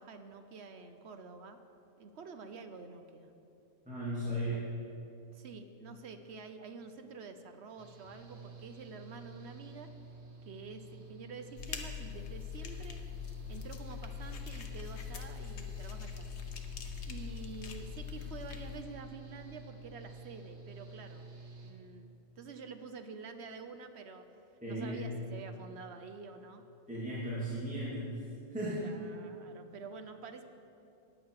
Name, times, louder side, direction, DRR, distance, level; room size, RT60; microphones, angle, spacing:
voice 1, 0.0-1.6 2.0-3.3 4.4-4.6 5.3-9.9 10.4-13.0 13.5-16.7 17.1-21.3 21.6-24.2 24.7-26.6 28.8-30.4, right 4 dB, 65° right, 8 dB, 0.9 m, -48 dB
voice 2, 3.9-4.6 24.6-25.0 26.9-28.1 28.5-28.8, right 1 dB, 5° right, -10 dB, 2.5 m, -36 dB
Engine / Mechanical fan, 7.8-21.7, right 3 dB, 90° right, 1.7 m, -50 dB
sound 1, 11.6-18.8, left 8 dB, 65° left, 1.2 m, -43 dB
14.5 x 10.0 x 4.7 m, 2.8 s
omnidirectional pair, 1.3 m